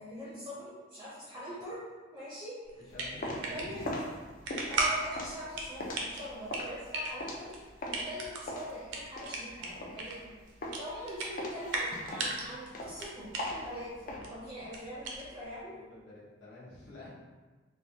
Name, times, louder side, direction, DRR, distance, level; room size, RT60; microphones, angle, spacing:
voice 1, 0.0-1.8 2.1-2.6 3.2-3.9 4.7-7.5 7.9-10.3 10.8-15.8, equal, 20° right, -8 dB, 0.5 m, -43 dB
sound 1, 2.6-15.6, right 2 dB, 65° right, 0.5 m, -38 dB
voice 2, 2.9-4.0 8.0-8.2 15.7-17.1, left 1 dB, 65° left, -8 dB, 1.1 m, -47 dB
sound 2, 2.9-8.1 8.5-10.3 10.6-11.0 11.4-14.2, left 1 dB, 45° left, 0.4 m, -40 dB
3.3 x 2.1 x 2.7 m, 1.3 s
head